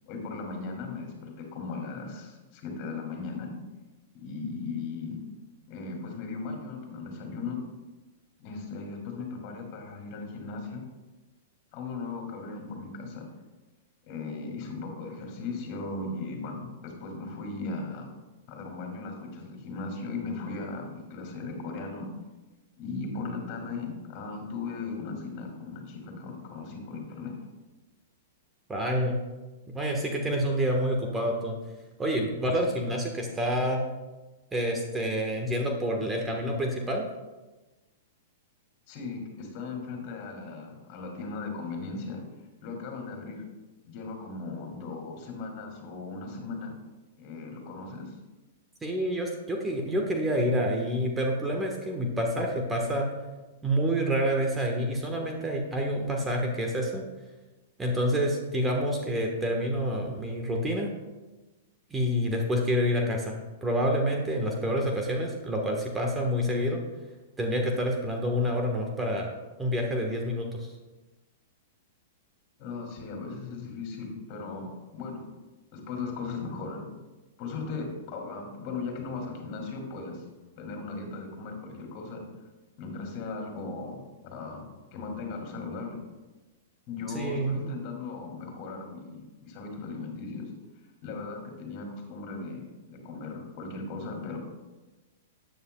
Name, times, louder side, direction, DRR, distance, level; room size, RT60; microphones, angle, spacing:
voice 1, 0.1-3.5 4.1-5.2 5.7-7.6 8.4-10.8 11.7-13.3 14.0-18.1 18.5-22.1 22.8-27.3 38.9-42.2 42.6-43.4 43.8-46.7 47.2-48.1 72.6-75.3 75.7-76.9 77.4-80.2 80.6-82.3 82.8-86.0 86.9-90.5 91.0-94.4, left 4 dB, 45° left, 1 dB, 2.7 m, -37 dB
voice 2, 28.7-29.2 29.7-31.6 32.0-33.8 34.5-37.0 48.8-53.1 53.6-57.0 57.8-60.9 61.9-66.8 67.4-69.3 69.6-70.7 87.1-87.6, equal, 15° right, 1 dB, 1.3 m, -28 dB
12.5 x 9.3 x 2.3 m, 1.2 s
hypercardioid pair, 120°, 0 cm